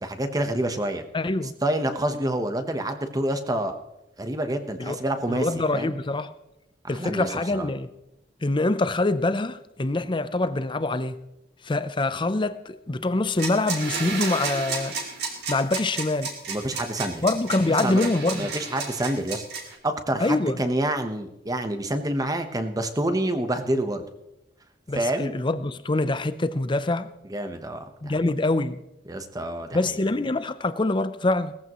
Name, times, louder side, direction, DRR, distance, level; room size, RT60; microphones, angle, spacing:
voice 1, 0.0-1.0 1.6-3.8 4.2-5.9 6.8-7.7 16.5-17.2 17.8-18.1 18.3-19.4 19.8-24.0 24.9-25.3 27.3-28.2 29.1-30.0, right 1 dB, 20° right, 1.1 m, -27 dB
voice 2, 1.1-1.5 4.8-5.0 5.3-6.3 6.9-7.9 8.4-11.2 11.6-15.0 15.5-16.3 17.2-18.5 20.2-20.6 24.9-27.1 28.0-28.8 29.7-31.5, left 2 dB, 25° left, 0.6 m, -25 dB
sound 1, 13.3-19.8, right 4 dB, 65° right, 2.8 m, -32 dB
18.5 x 14.0 x 3.1 m
head